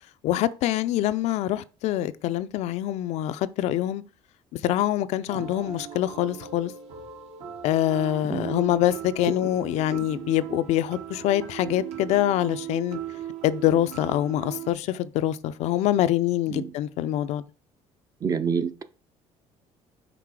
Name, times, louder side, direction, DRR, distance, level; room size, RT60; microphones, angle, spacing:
voice 1, 0.2-4.0 4.6-6.7 7.6-13.0 13.4-17.4, left 13 dB, 70° left, 0.4 m, -25 dB
sound 1, 5.3-14.7, right 10 dB, 65° right, 1.3 m, -38 dB
voice 2, 18.2-18.8, right 6 dB, 30° right, 0.5 m, -28 dB
6.0 x 4.1 x 4.7 m
cardioid pair, 140°, 12 cm